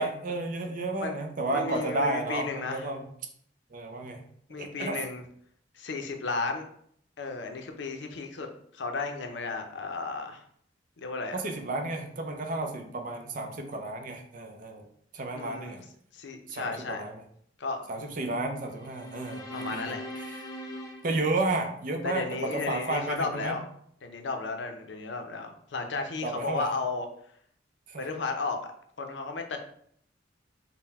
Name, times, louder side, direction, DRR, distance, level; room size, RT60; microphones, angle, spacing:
voice 1, 0.0-3.1 3.7-4.2 4.6-5.0 11.3-14.9 15.1-15.8 16.5-17.1 17.9-20.4 21.0-23.6 26.2-26.7 27.9-28.1, right 2 dB, 45° right, 4 dB, 0.5 m, -32 dB
voice 2, 1.5-2.8 4.5-5.2 5.7-6.7 7.2-8.5 8.7-10.4 11.0-11.4 15.3-15.8 16.1-17.0 17.6-17.9 19.5-20.0 22.0-23.6 24.0-27.1 28.0-28.7 29.0-29.6, left 3 dB, 70° left, 5 dB, 0.5 m, -34 dB
sound 1, 18.7-22.1, equal, 20° left, 0.5 m, -41 dB
3.9 x 2.1 x 4.1 m, 0.65 s
head